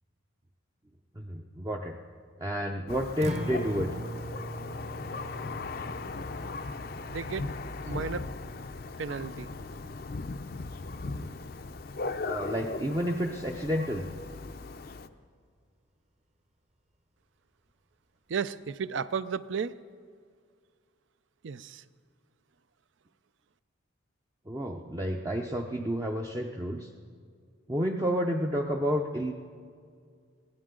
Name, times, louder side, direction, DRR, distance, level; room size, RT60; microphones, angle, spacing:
voice 1, 1.2-2.0 2.4-3.9 11.2-11.3 12.2-14.1 24.5-26.9 27.7-29.3, equal, 15° right, 1 dB, 0.5 m, -30 dB
Thunder, 2.9-15.1, left 3 dB, 45° left, 0.5 m, -38 dB
Acoustic guitar, 3.2-11.3, right 1 dB, 35° right, 0.9 m, -42 dB
voice 2, 7.1-7.5 7.8-8.3 9.0-9.5 18.3-19.8 21.4-21.8, right 6 dB, 65° right, 15 dB, 0.4 m, -33 dB
22.5 x 16.5 x 3.8 m, 2.1 s
head